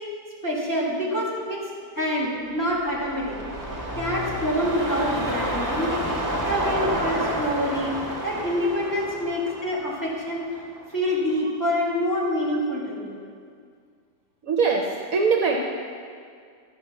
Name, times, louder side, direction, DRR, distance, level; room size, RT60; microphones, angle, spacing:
voice 1, 0.4-1.6 1.9-3.4 4.0-5.9 6.4-10.5 10.9-13.2, equal, 10° left, -4 dB, 1.8 m, -26 dB
sound 1, 2.5-10.9 11.3-11.4, equal, 10° right, 1.3 m, -30 dB
voice 2, 14.4-14.8 15.1-15.6, right 5 dB, 60° right, 1 dB, 1.1 m, -22 dB
11.0 x 5.2 x 7.0 m, 2.1 s
omnidirectional pair, 1.8 m